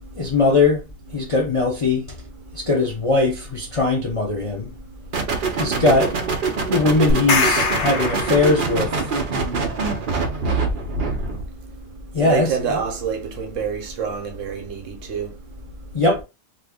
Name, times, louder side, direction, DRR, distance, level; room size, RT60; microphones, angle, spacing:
voice 1, 0.2-0.8 1.1-2.0 2.5-4.7 5.5-6.1 6.7-8.9 12.1-12.5 15.9-16.2, left 3 dB, 45° left, 0.4 m, -20 dB
sound 1, 5.1-11.5, right 4 dB, 50° right, 0.7 m, -24 dB
voice 2, 5.7-6.1 12.2-15.3, right 6 dB, 70° right, 1.0 m, -27 dB
sound 2, 7.1-9.1, left 4 dB, 60° left, 0.9 m, -23 dB
2.6 x 2.5 x 3.4 m
omnidirectional pair, 1.4 m